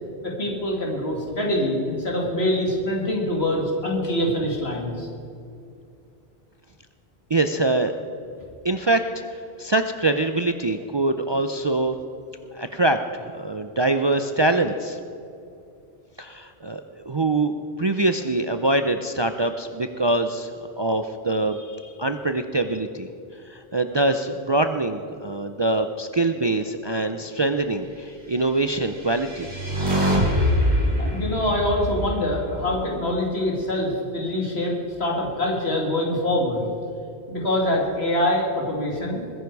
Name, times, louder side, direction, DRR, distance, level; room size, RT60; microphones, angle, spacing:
voice 1, 0.2-5.1 31.0-34.7 35.0-36.7 37.3-39.2, left 1 dB, 75° left, -1 dB, 2.7 m, -24 dB
voice 2, 7.3-7.9 8.6-9.2 9.6-12.0 12.5-15.0 16.2-20.5 20.8-23.1 23.5-29.5, right 2 dB, 35° right, 7 dB, 0.5 m, -24 dB
sound 1, 28.8-33.1, equal, 90° right, 3.4 m, -24 dB
21.0 x 10.5 x 4.7 m, 2.5 s
omnidirectional pair, 1.1 m